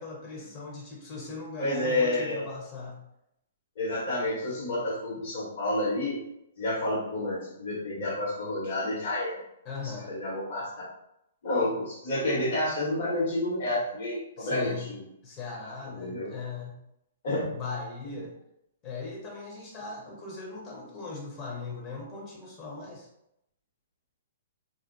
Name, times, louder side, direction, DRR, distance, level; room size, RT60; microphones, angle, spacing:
voice 1, 0.0-3.0 9.6-10.2 14.4-14.9 15.2-16.8 17.5-18.3 18.8-23.1, left 4 dB, 30° left, -2 dB, 0.8 m, -39 dB
voice 2, 1.6-2.5 3.8-6.2 6.6-9.4 9.8-10.7 11.4-15.0 15.9-16.3 17.2-17.5, left 1 dB, 55° left, -5 dB, 1.2 m, -29 dB
2.5 x 2.2 x 2.6 m, 0.80 s
hypercardioid pair, 125°, 0 cm